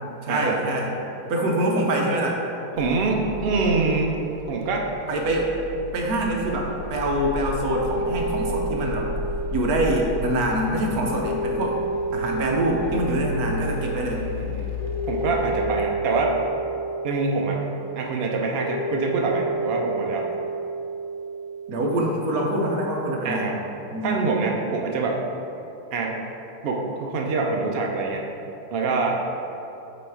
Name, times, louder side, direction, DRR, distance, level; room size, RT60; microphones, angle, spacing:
voice 1, 0.2-0.9 1.3-2.4 5.1-5.5 5.9-9.1 9.5-11.8 12.1-14.2 21.7-23.5 23.9-24.2, right 1 dB, 70° right, 0 dB, 1.2 m, -24 dB
sound 1, 2.8-15.7, left 3 dB, 75° left, 1.2 m, -34 dB
voice 2, 2.8-4.2 4.5-4.9 14.1-14.7 15.1-16.4 17.0-17.6 18.0-20.3 23.2-23.6 24.0-25.2 25.9-26.2 26.6-28.2 28.7-29.2, right 3 dB, 90° right, 0 dB, 0.5 m, -25 dB
sound 2, 7.5-21.7, right 2 dB, 35° left, 1.0 m, -31 dB
7.5 x 3.1 x 4.6 m, 2.9 s
omnidirectional pair, 1.8 m